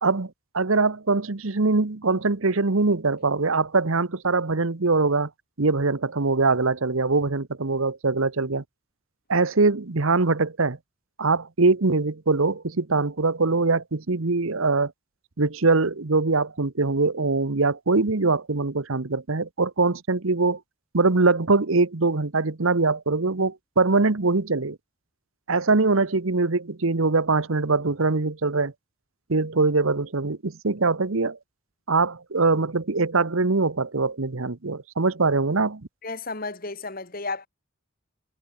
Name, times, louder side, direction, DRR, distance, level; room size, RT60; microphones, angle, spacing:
voice 1, 0.0-5.3 5.6-8.6 9.3-10.8 11.2-14.9 15.4-20.6 20.9-24.8 25.5-28.7 29.3-31.4 31.9-35.8, right 3 dB, 75° right, 1.1 m, -22 dB
voice 2, 36.0-37.5, left 3 dB, 40° left, 2.3 m, -33 dB
head